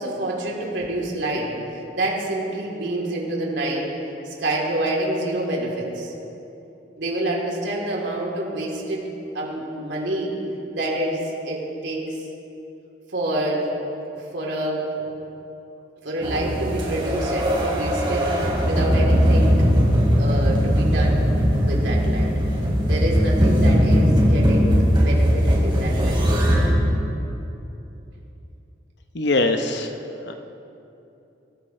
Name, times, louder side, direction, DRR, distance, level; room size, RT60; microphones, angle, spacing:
voice 1, 0.0-3.9 4.2-6.1 7.0-9.1 9.3-10.3 10.7-11.2 11.4-12.2 13.1-13.7 14.1-15.1 16.0-19.6 20.1-21.2 21.6-22.3 22.9-26.2, right 1 dB, 80° right, -3 dB, 3.4 m, -27 dB
sound 1, 16.2-26.7, equal, 25° right, 3.3 m, -19 dB
voice 2, 29.1-29.9 30.3-30.4, left 2 dB, 70° left, 6 dB, 0.8 m, -22 dB
23.0 x 14.5 x 3.3 m, 2.9 s
head